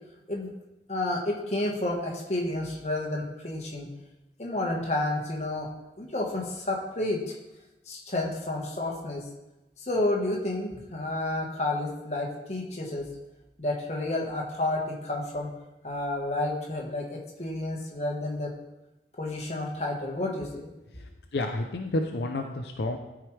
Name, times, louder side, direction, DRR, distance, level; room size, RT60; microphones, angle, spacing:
voice 1, 0.9-3.9 4.4-5.7 6.0-7.3 7.9-9.2 9.8-13.1 13.6-15.5 15.8-18.5 19.2-20.7, left 2 dB, 40° left, -1 dB, 1.3 m, -30 dB
voice 2, 20.9-23.0, left 2 dB, 75° left, 4 dB, 0.5 m, -30 dB
12.5 x 4.8 x 3.2 m, 0.99 s
head